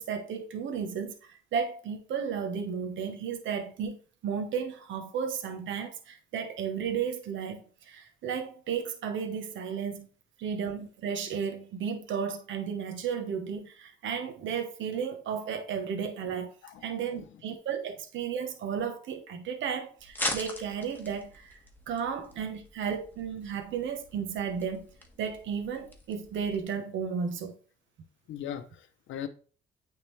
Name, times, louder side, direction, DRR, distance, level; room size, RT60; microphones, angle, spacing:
voice 1, 0.0-4.0 4.2-10.1 10.4-16.5 16.8-21.6 21.9-27.6, right 7 dB, 75° right, 1.0 m, -34 dB
sound 1, 20.0-26.6, left 1 dB, 10° left, 1.4 m, -41 dB
voice 2, 28.3-29.3, left 10 dB, 75° left, 0.6 m, -39 dB
8.7 x 3.7 x 3.2 m
cardioid pair, 90°, 20 cm